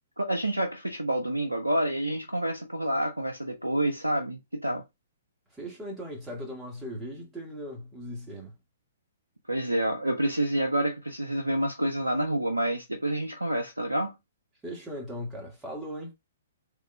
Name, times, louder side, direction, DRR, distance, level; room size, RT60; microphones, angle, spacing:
voice 1, 0.2-4.8 9.5-14.2, right 1 dB, 90° right, 0.5 m, -28 dB
voice 2, 5.5-8.5 14.6-16.1, equal, 10° right, 1.7 m, -38 dB
3.5 x 3.1 x 2.2 m
figure-of-eight pair, 120°, 0 cm